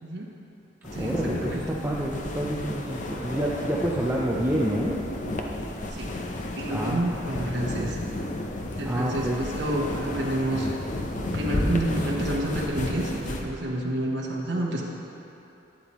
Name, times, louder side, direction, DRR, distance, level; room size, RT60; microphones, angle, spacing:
sound 1, 0.8-13.4, left 1 dB, 40° left, 0.7 m, -32 dB
voice 1, 1.0-5.0 6.7-7.0 8.8-9.4, right 1 dB, 10° right, -5 dB, 0.6 m, -28 dB
voice 2, 6.6-8.0 8.7-10.7 11.1-14.8, right 1 dB, 70° right, -3 dB, 1.2 m, -29 dB
11.5 x 9.8 x 3.1 m, 2.9 s
head